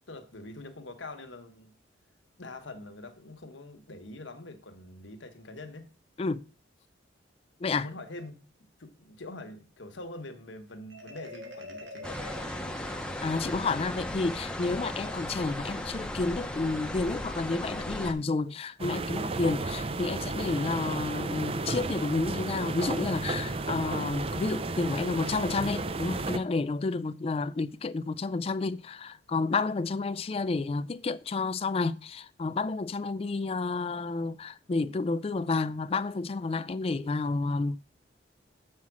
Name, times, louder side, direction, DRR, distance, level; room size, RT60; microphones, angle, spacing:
voice 1, 0.1-1.7 2.4-5.9 7.7-12.2, left 2 dB, 75° left, 1.2 m, -44 dB
Marimba xylophone, 10.9-13.7, left 1 dB, 65° right, 1.5 m, -45 dB
sound 1, 12.0-18.1, left 1 dB, 5° left, 0.8 m, -36 dB
voice 2, 13.2-37.8, left 3 dB, 30° left, 0.3 m, -30 dB
sound 2, 18.8-26.4, right 3 dB, 30° right, 0.5 m, -33 dB
7.4 x 5.7 x 6.0 m
head